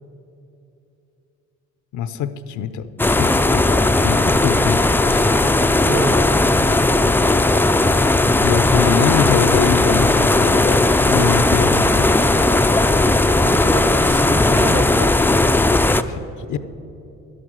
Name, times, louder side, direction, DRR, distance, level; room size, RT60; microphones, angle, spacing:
voice 1, 1.9-5.3 8.4-12.1 16.1-16.2 16.5-16.6, left 8 dB, 75° left, 13 dB, 0.7 m, -24 dB
sound 1, 3.0-16.0, left 2 dB, 5° left, 0.4 m, -16 dB
voice 2, 5.8-6.3 11.1-11.5 13.4-15.1, right 5 dB, 40° right, 10 dB, 1.1 m, -28 dB
11.5 x 11.0 x 6.3 m, 2.8 s
cardioid pair, 90°, 30 cm